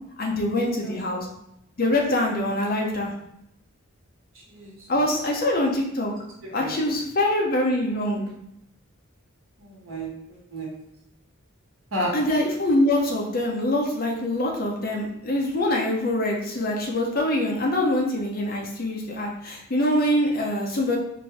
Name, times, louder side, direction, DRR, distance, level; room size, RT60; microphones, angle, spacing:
voice 1, 0.2-1.3 1.8-3.1 4.9-6.1 6.5-8.2 12.1-21.0, left 1 dB, 45° left, 0 dB, 0.7 m, -24 dB
voice 2, 0.8-1.2 4.5-5.0 6.4-6.8 9.6-10.7 11.9-12.1, equal, 65° right, -4 dB, 1.4 m, -33 dB
4.3 x 2.6 x 3.4 m, 0.79 s
head